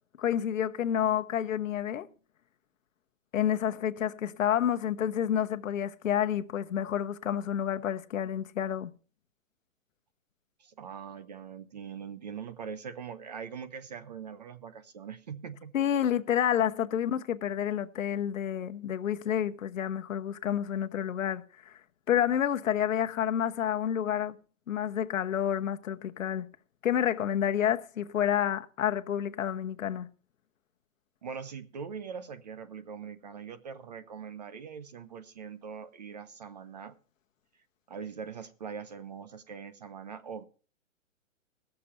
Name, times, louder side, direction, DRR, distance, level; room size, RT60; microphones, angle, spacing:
voice 1, 0.2-2.1 3.3-8.9 15.7-21.7 22.1-24.4 24.7-26.5 26.8-30.1, left 9 dB, 70° left, 1.0 m, -29 dB
voice 2, 10.6-15.7 31.2-36.9 37.9-40.4, right 6 dB, 35° right, 0.5 m, -42 dB
16.5 x 6.8 x 5.6 m
hypercardioid pair, 160°, 40 cm